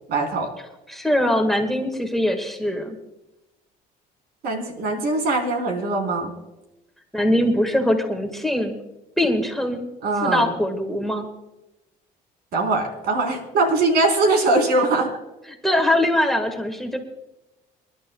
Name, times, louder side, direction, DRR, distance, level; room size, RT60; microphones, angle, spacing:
voice 1, 0.1-0.5 4.4-6.3 10.0-10.5 12.5-15.1, right 2 dB, 70° right, 3 dB, 3.8 m, -21 dB
voice 2, 0.9-3.0 7.1-8.7 9.2-9.9 10.2-11.3 15.6-17.0, left 1 dB, ahead, 6 dB, 1.6 m, -22 dB
27.0 x 11.5 x 2.3 m, 0.98 s
cardioid pair, 110°, 17 cm